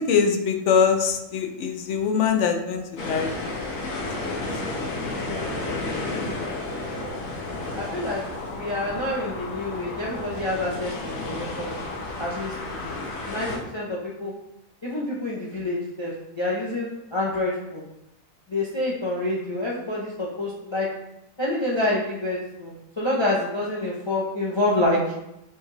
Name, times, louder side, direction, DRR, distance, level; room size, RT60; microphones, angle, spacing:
voice 1, 0.0-3.4 3.6-4.9 5.5-6.4 12.8-13.1, left 6 dB, 70° left, 6 dB, 0.9 m, -25 dB
sound 1, 3.0-13.6, left 2 dB, 85° left, 1.3 m, -32 dB
voice 2, 5.2-5.5 6.0-7.1 7.8-11.8 12.2-12.5 13.3-14.3 14.8-17.8 18.5-20.9 21.4-25.0, left 2 dB, 30° left, -5 dB, 0.5 m, -28 dB
7.0 x 2.4 x 3.2 m, 0.86 s
omnidirectional pair, 1.4 m